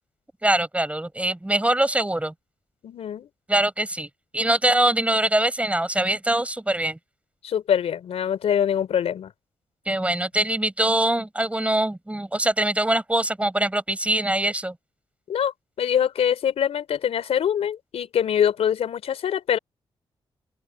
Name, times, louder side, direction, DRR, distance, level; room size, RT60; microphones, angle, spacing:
voice 1, 0.4-2.3 3.5-7.0 9.9-14.8, right 1 dB, 10° right, 7.9 m, -23 dB
voice 2, 2.8-3.3 7.4-9.3 15.3-19.6, left 9 dB, 85° left, 4.7 m, -24 dB
open air
cardioid pair, 70°, 10 cm